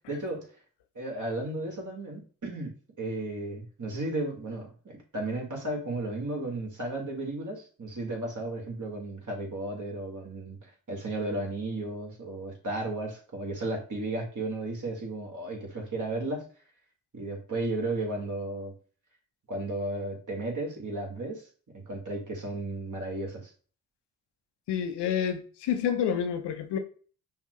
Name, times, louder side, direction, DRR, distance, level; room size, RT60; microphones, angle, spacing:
voice 1, 0.1-0.5 1.0-16.4 17.1-18.7 19.5-21.5 21.7-23.5, right 2 dB, 45° right, 1.9 m, -34 dB
voice 2, 24.7-26.8, left 8 dB, 80° left, 0.7 m, -28 dB
5.6 x 2.3 x 3.1 m
supercardioid pair, 45°, 41 cm